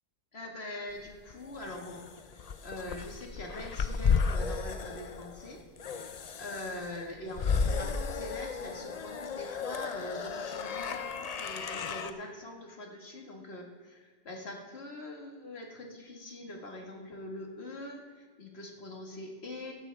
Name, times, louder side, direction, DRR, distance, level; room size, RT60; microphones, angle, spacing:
voice 1, 0.3-2.1 2.3-5.6 5.9-19.7, left 1 dB, 65° left, 1 dB, 1.9 m, -43 dB
sound 1, 1.1-12.1, left 5 dB, 45° left, 0.6 m, -34 dB
15.5 x 12.0 x 3.4 m, 1.5 s
omnidirectional pair, 1.1 m